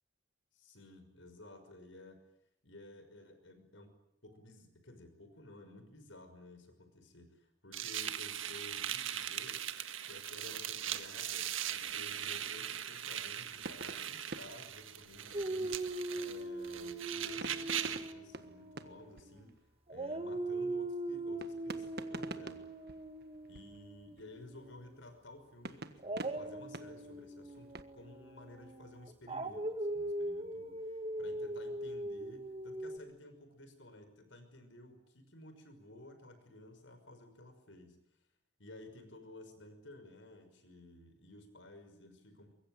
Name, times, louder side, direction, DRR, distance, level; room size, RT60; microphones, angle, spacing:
voice 1, 0.5-2.2 2.6-3.9 4.2-9.6 10.1-19.5 19.9-22.7 23.5-38.0 38.6-42.5, left 1 dB, 70° left, 8 dB, 6.0 m, -54 dB
sound 1, 7.7-18.1, right 10 dB, 85° right, 1.7 m, -40 dB
sound 2, 13.5-16.3 17.4-19.7 20.0-20.3 21.4-24.4 25.6-27.8, right 2 dB, 55° right, 1.5 m, -48 dB
Dog, 15.3-19.5 19.9-24.9 26.0-33.0, right 1 dB, 30° right, 1.9 m, -40 dB
24.0 x 22.5 x 9.2 m, 0.81 s
head